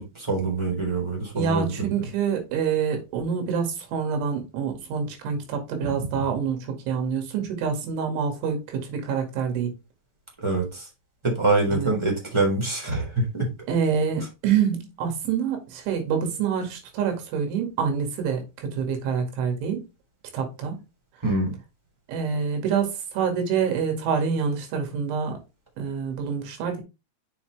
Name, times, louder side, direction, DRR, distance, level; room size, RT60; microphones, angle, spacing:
voice 1, 0.0-1.9 5.8-6.2 10.4-10.9 11.2-13.5 21.2-21.5, right 3 dB, 5° right, 2.7 m, -25 dB
voice 2, 1.3-9.7 11.7-11.9 13.7-19.8 20.3-20.8 22.1-25.4 25.8-26.8, right 6 dB, 85° right, 4.6 m, -26 dB
7.2 x 7.0 x 3.3 m
omnidirectional pair, 5.3 m